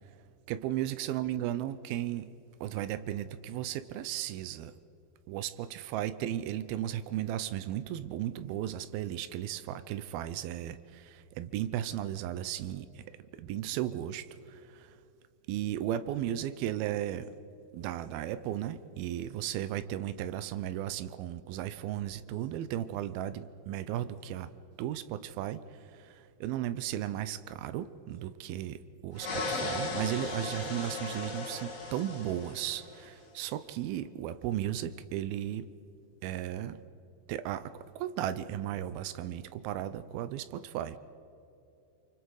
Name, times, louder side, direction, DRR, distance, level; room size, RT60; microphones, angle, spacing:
voice 1, 0.5-2.3 2.6-4.7 5.3-13.0 13.3-14.9 15.5-17.3 17.7-24.5 24.8-25.6 26.0-26.2 26.4-35.7 36.2-36.8 37.3-41.0, right 12 dB, 80° right, 13 dB, 2.2 m, -35 dB
sound 1, 29.1-33.1, left 3 dB, 45° left, 1.0 m, -36 dB
29.5 x 25.0 x 4.8 m, 2.7 s
omnidirectional pair, 5.0 m